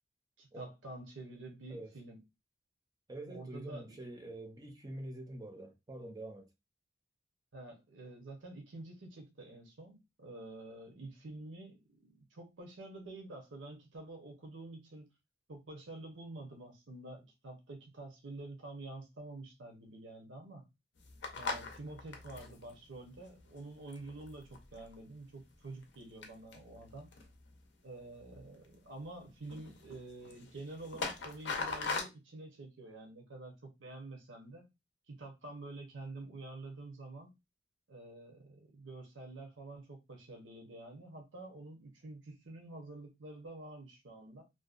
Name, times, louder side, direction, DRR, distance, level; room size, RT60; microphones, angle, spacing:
voice 1, 0.4-2.2 3.3-4.0 7.5-15.1 15.5-20.6 21.3-27.1 27.8-34.7 35.1-37.3 37.9-44.4, right 2 dB, 75° right, 0.8 m, -48 dB
voice 2, 3.1-6.5, right 1 dB, 20° right, 0.5 m, -46 dB
sound 1, 21.0-25.0 25.4-25.9 26.2-27.5 28.2-28.7 29.0-29.2 29.4-32.0, left 4 dB, 65° left, 0.5 m, -41 dB
2.7 x 2.1 x 2.4 m
head